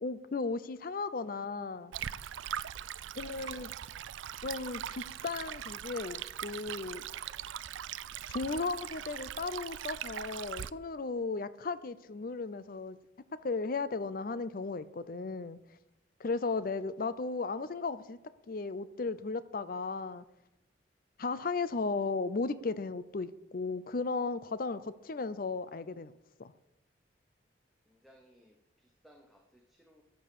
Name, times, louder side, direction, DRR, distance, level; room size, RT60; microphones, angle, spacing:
voice 1, 0.0-1.9 3.2-3.7 4.4-7.0 8.3-13.0 13.4-15.6 16.2-18.2 18.5-20.2 21.2-26.1 26.4-26.5, left 4 dB, 50° left, 0.5 m, -35 dB
Stream, 1.9-10.7, right 10 dB, 80° right, 0.4 m, -41 dB
voice 2, 27.9-30.0, equal, ahead, 0.9 m, -63 dB
11.0 x 7.7 x 6.8 m
head